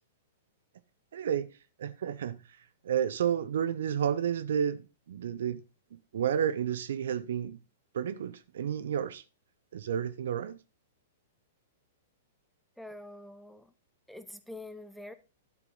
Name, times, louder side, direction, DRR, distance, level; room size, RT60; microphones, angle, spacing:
voice 1, 1.1-1.5 1.8-2.4 2.8-5.6 5.9-7.6 7.9-9.2 9.7-10.6, right 8 dB, 65° right, 0.8 m, -31 dB
voice 2, 12.8-13.7 14.1-15.1, left 1 dB, ahead, 1.0 m, -45 dB
12.0 x 7.2 x 3.9 m
figure-of-eight pair, 105°, 0 cm